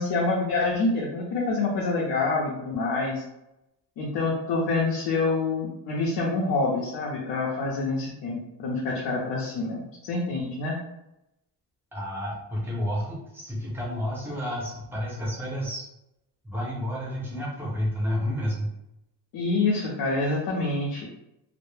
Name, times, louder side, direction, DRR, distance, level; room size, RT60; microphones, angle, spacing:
voice 1, 0.0-3.2 4.0-10.8 19.3-21.1, left 3 dB, 85° left, -4 dB, 0.7 m, -27 dB
voice 2, 11.9-15.9 16.4-18.7, equal, 5° right, -5 dB, 0.5 m, -30 dB
2.1 x 2.1 x 3.0 m, 0.86 s
cardioid pair, 180°, 41 cm